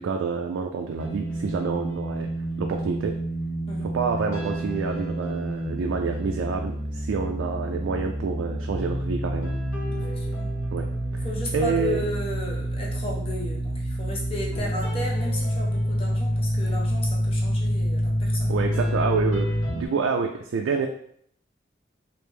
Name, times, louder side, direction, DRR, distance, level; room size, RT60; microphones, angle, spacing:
voice 1, 0.0-2.3 2.6-3.2 3.8-9.5 10.7-10.9 11.1-11.2 11.5-12.0 18.5-20.9, right 5 dB, 85° right, 3 dB, 0.3 m, -28 dB
sound 1, 1.0-19.9, equal, 80° left, 0.8 m, -28 dB
voice 2, 9.9-10.5 11.2-18.5, left 2 dB, 30° left, -2 dB, 0.5 m, -34 dB
3.2 x 2.6 x 3.3 m, 0.67 s
head